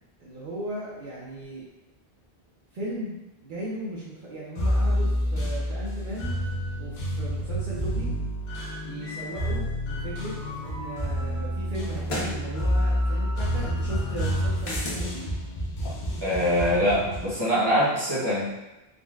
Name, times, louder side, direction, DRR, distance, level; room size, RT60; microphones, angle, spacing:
voice 1, 0.2-1.6 2.7-6.3 6.8-8.1 8.8-10.3 10.6-15.3, right 1 dB, 60° right, -8 dB, 0.8 m, -37 dB
sound 1, 4.6-17.3, equal, 55° left, 0.6 m, -28 dB
sound 2, 10.7-10.8 12.0-12.4 14.6-15.0, left 1 dB, 90° left, 1.1 m, -31 dB
voice 2, 16.2-18.5, equal, 25° right, -8 dB, 0.8 m, -24 dB
3.7 x 2.1 x 2.3 m, 0.98 s
omnidirectional pair, 1.0 m